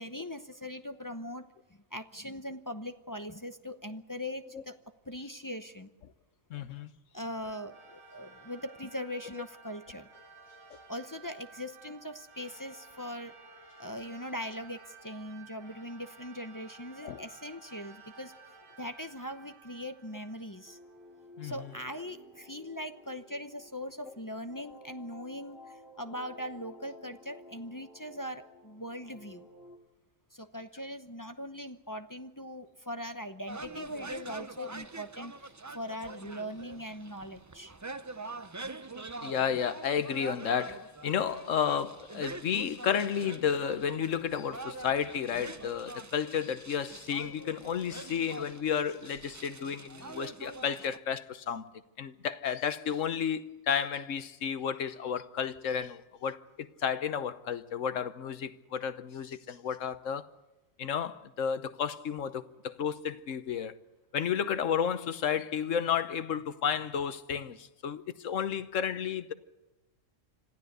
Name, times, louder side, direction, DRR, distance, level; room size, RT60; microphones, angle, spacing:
voice 1, 0.0-4.8 5.0-5.9 7.1-10.1 10.9-13.3 13.8-18.3 18.8-20.8 21.4-29.5 30.3-37.7, equal, 20° left, 0.7 m, -41 dB
voice 2, 6.5-6.9 10.7-10.8 17.0-17.2 21.4-21.7 39.2-51.7 52.0-60.3 60.8-63.7 64.1-69.3, left 7 dB, 70° left, 1.3 m, -32 dB
sound 1, 7.4-21.1, right 3 dB, 85° right, 4.7 m, -54 dB
sound 2, 20.7-29.8, left 1 dB, 45° left, 2.8 m, -54 dB
sound 3, 33.5-51.0, right 3 dB, 25° right, 0.4 m, -45 dB
26.0 x 15.0 x 8.0 m
omnidirectional pair, 1.4 m